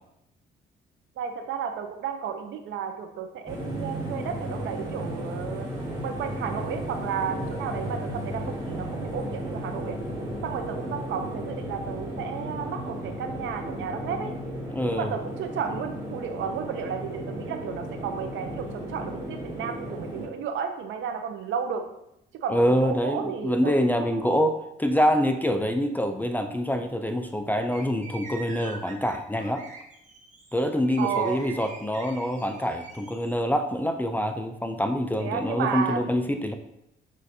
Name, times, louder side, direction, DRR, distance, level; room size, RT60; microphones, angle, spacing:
voice 1, 1.2-5.7 6.0-10.0 10.4-14.3 14.9-21.8 22.3-23.7 24.0-24.3 31.0-31.4 35.2-36.2, right 7 dB, 75° right, 6 dB, 0.5 m, -33 dB
sound 1, 3.5-20.3, equal, 20° right, 1.4 m, -34 dB
voice 2, 14.7-15.1 22.5-29.6 30.5-36.6, equal, 10° left, 6 dB, 0.3 m, -25 dB
sound 2, 27.7-33.3, right 4 dB, 40° right, 1.0 m, -44 dB
6.3 x 2.5 x 2.6 m, 0.83 s
cardioid pair, 90°, 20 cm